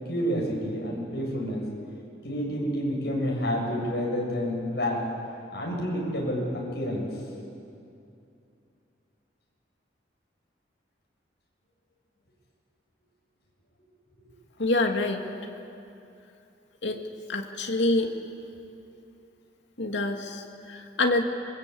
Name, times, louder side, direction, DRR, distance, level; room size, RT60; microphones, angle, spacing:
voice 1, 0.1-1.6 2.2-5.0 5.5-7.1, equal, 65° left, -2 dB, 7.4 m, -29 dB
voice 2, 14.6-15.2 16.8-17.0 17.3-18.1 19.8-21.2, left 2 dB, 80° left, 3 dB, 2.3 m, -26 dB
27.5 x 23.0 x 8.5 m, 2.6 s
head